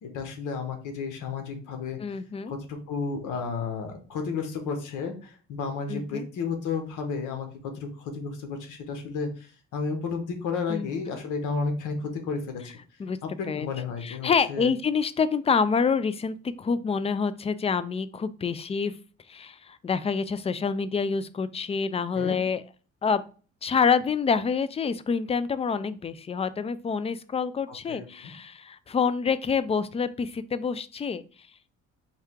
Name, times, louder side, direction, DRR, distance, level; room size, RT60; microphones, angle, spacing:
voice 1, 0.0-2.0 2.5-12.7 13.2-14.7 22.1-22.4 27.7-28.3, left 5 dB, 90° left, 5 dB, 1.1 m, -32 dB
voice 2, 2.0-2.5 5.9-6.3 10.7-11.2 13.0-13.2 13.5-13.7 14.0-18.9 19.3-22.6 23.0-23.2 23.6-31.2, left 5 dB, 20° left, 15 dB, 0.3 m, -27 dB
4.7 x 2.8 x 3.5 m, 0.38 s
cardioid pair, 90°, 30 cm